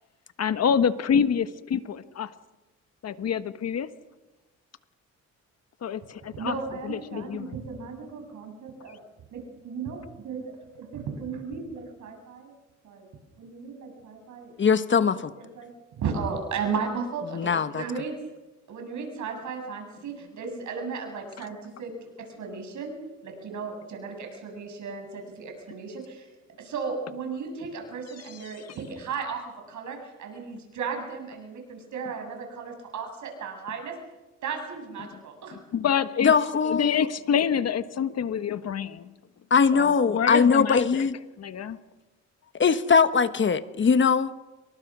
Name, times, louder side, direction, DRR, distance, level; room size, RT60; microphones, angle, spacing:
voice 1, 0.4-2.3 3.0-3.9 5.8-6.6 6.8-7.6 21.4-21.5 28.2-28.8 35.0-35.2 35.5-36.3 36.6-39.1 39.7-41.1 41.4-41.8, left 7 dB, 55° left, 12 dB, 1.4 m, -27 dB
voice 2, 6.2-9.0 9.3-9.4 9.6-10.4 10.7-12.5 12.8-13.1 13.4-14.5 14.9-15.7 16.0-18.1 18.7-21.9 22.4-22.9 23.2-26.3 26.6-33.9 34.4-35.6, right 5 dB, 75° right, 3 dB, 7.8 m, -35 dB
voice 3, 14.6-15.3 17.3-17.8 36.2-37.0 39.5-41.2 42.5-44.3, left 5 dB, 40° left, 12 dB, 1.3 m, -21 dB
28.0 x 23.5 x 6.2 m, 1.1 s
cardioid pair, 90°, 30 cm